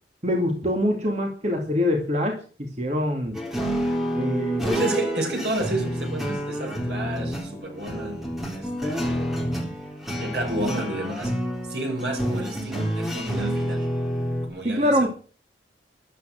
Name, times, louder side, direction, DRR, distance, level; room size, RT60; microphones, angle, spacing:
voice 1, 0.2-3.4 4.1-4.8 14.6-15.1, left 1 dB, 40° right, 2.4 m, -24 dB
sound 1, 3.3-14.5, equal, ahead, 3.9 m, -28 dB
voice 2, 4.7-9.3 10.2-11.4 11.7-13.9 14.4-15.1, right 1 dB, 65° right, 6.1 m, -31 dB
13.5 x 11.5 x 6.5 m
head